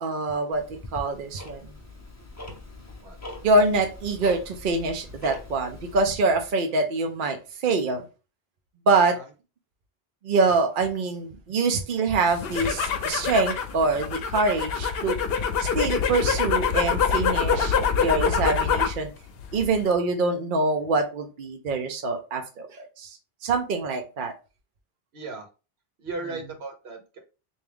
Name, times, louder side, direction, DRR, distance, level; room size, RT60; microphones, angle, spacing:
voice 1, 0.0-1.7 3.4-8.0 8.9-9.2 10.2-15.2 15.6-19.1 19.5-23.2 23.4-24.3, right 3 dB, 60° right, 4 dB, 0.7 m, -25 dB
Tick-tock, 0.5-6.1, left 2 dB, 20° left, 0.6 m, -42 dB
sound 1, 12.3-19.0 19.4-19.9, left 6 dB, 70° left, 0.8 m, -25 dB
voice 2, 25.1-25.5 26.0-27.2, right 3 dB, 80° right, 3 dB, 1.2 m, -36 dB
3.4 x 2.6 x 3.4 m, 0.31 s
omnidirectional pair, 1.0 m